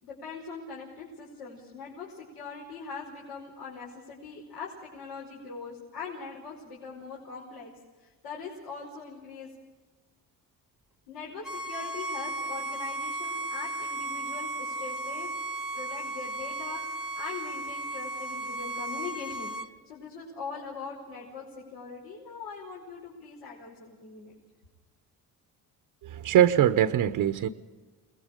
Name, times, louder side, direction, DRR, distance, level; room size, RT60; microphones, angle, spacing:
voice 1, 0.0-7.7 8.0-9.5 11.1-15.3 15.7-16.8 17.2-19.5 19.8-24.3, left 4 dB, 85° left, -3 dB, 5.3 m, -41 dB
Bowed string instrument, 11.4-19.7, right 2 dB, ahead, 0.9 m, -35 dB
voice 2, 26.0-27.5, right 11 dB, 65° right, 10 dB, 0.9 m, -22 dB
28.5 x 20.5 x 5.1 m, 1.3 s
cardioid pair, 115°, 38 cm